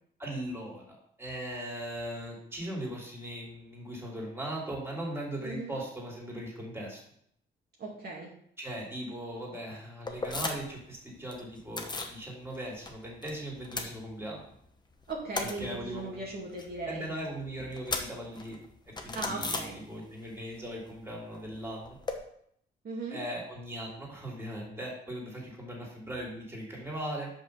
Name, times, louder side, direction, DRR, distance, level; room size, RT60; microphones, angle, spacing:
voice 1, 0.2-7.0 8.6-14.5 15.4-16.2 16.9-18.6 19.0-22.0 23.1-27.3, right 1 dB, 10° right, -3 dB, 3.1 m, -39 dB
voice 2, 5.4-5.8 7.8-8.3 15.1-17.1 19.1-19.8 22.8-23.2, right 2 dB, 55° right, -3 dB, 2.1 m, -38 dB
sound 1, 10.1-10.8 11.1-12.2 12.5-13.3 13.6-14.6 14.9-20.3 20.5-22.2, left 3 dB, 20° left, 1.1 m, -38 dB
6.1 x 5.3 x 5.4 m, 0.69 s
cardioid pair, 90°, 20 cm